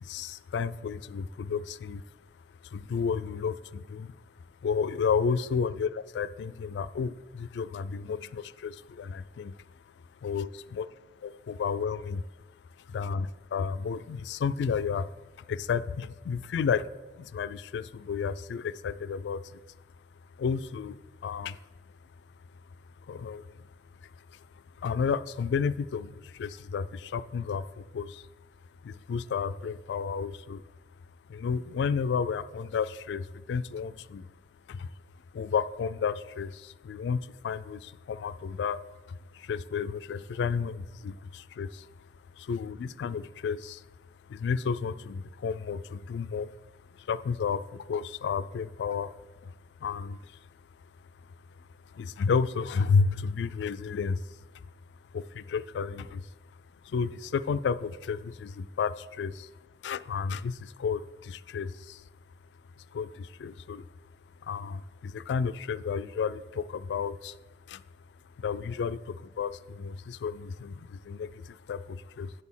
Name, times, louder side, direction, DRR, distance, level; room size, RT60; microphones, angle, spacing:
voice 1, 0.0-2.0 2.6-4.1 4.6-9.5 10.2-10.9 11.2-12.2 12.9-15.1 15.5-16.9 17.2-19.6 20.4-21.6 23.1-23.6 24.8-28.3 28.8-30.6 31.3-34.3 34.7-34.9 35.3-38.8 39.1-41.9 42.4-43.8 44.3-46.5 47.0-49.1 49.4-49.5 49.8-50.3 51.9-54.3 55.1-56.2 56.8-59.5 59.8-62.0 62.9-63.9 64.4-67.4 67.7-67.8 68.4-72.3, left 6 dB, 75° left, 15 dB, 0.3 m, -32 dB
9.6 x 4.1 x 7.2 m, 1.2 s
head